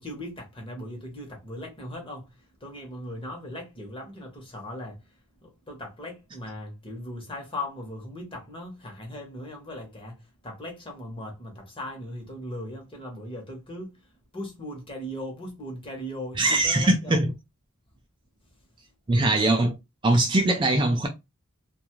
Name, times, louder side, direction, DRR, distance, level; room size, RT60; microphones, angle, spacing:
voice 1, 0.0-10.2 10.4-14.0 14.3-17.2, left 1 dB, 25° left, 0.9 m, -38 dB
voice 2, 16.4-17.3 19.1-19.7 20.0-21.1, right 2 dB, 20° right, 0.3 m, -21 dB
2.5 x 2.4 x 2.9 m
head